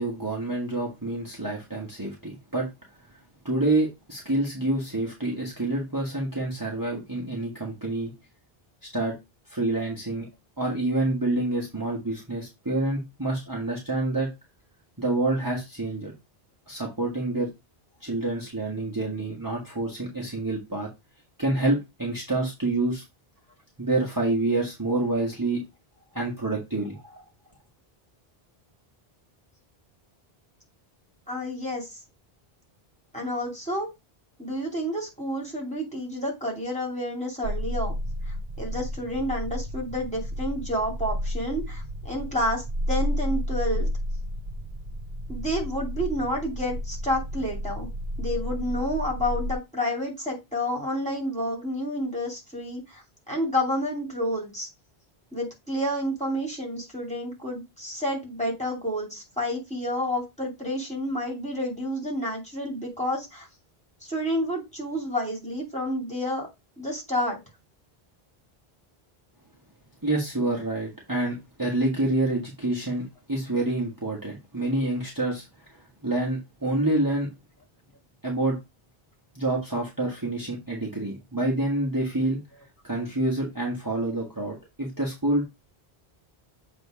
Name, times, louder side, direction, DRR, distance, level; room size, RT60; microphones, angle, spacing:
voice 1, 0.0-2.7 3.4-8.1 8.8-9.2 9.5-10.3 10.6-14.3 15.0-16.1 16.7-17.5 18.0-20.9 21.4-23.0 23.8-25.6 26.1-27.2 70.0-73.0 73.3-77.3 78.2-78.6 79.3-82.4 82.8-85.5, right 2 dB, 20° right, -3 dB, 1.5 m, -27 dB
voice 2, 31.3-32.0 33.1-33.9 34.4-37.9 38.3-43.9 45.3-47.9 48.2-54.7 55.3-63.5 64.0-66.5 66.8-67.4, equal, 5° left, -3 dB, 2.5 m, -30 dB
sound 1, 37.4-49.5, equal, 45° right, 0.4 m, -31 dB
7.6 x 2.9 x 4.8 m, 0.23 s
omnidirectional pair, 1.0 m